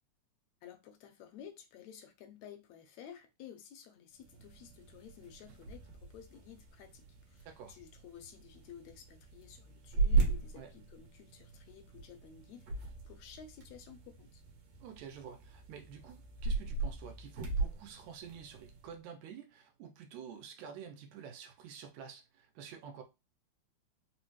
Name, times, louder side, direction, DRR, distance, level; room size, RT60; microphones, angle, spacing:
voice 1, 0.6-14.4, left 8 dB, 80° left, 1.8 m, -53 dB
sound 1, 4.2-18.9, right 4 dB, 70° right, 2.0 m, -38 dB
voice 2, 7.5-7.8 10.6-10.7 14.8-23.0, right 7 dB, 85° right, 2.0 m, -49 dB
4.8 x 2.1 x 3.0 m
omnidirectional pair, 3.3 m